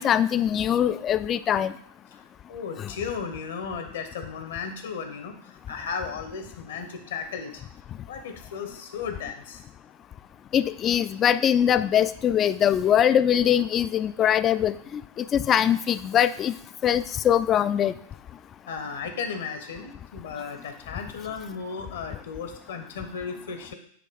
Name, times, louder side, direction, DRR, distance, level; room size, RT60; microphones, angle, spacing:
voice 1, 0.0-1.7 2.8-2.9 10.5-16.5 16.8-17.9, left 9 dB, 30° left, 15 dB, 0.3 m, -22 dB
voice 2, 2.5-7.6 8.1-9.6 18.7-23.7, left 6 dB, 60° left, 6 dB, 1.0 m, -35 dB
8.7 x 3.0 x 5.2 m, 0.63 s
figure-of-eight pair, 90°, 0 cm